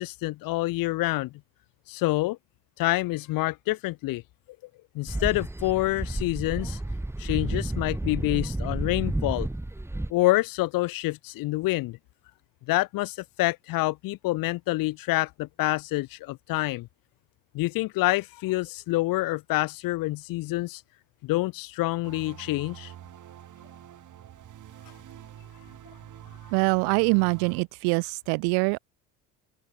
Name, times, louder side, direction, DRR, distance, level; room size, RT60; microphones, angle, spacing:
voice 1, 0.0-1.3 1.9-2.4 2.8-4.2 4.9-6.8 7.2-9.5 10.1-12.0 12.7-16.9 17.5-20.8 21.2-22.9, left 19 dB, 60° left, 0.7 m, -27 dB
sound 1, 5.1-10.1, right 1 dB, 5° right, 1.7 m, -31 dB
sound 2, 22.0-27.6, right 11 dB, 50° right, 3.4 m, -46 dB
voice 2, 26.5-28.8, right 36 dB, 80° right, 1.3 m, -24 dB
open air
supercardioid pair, 90°, 39 cm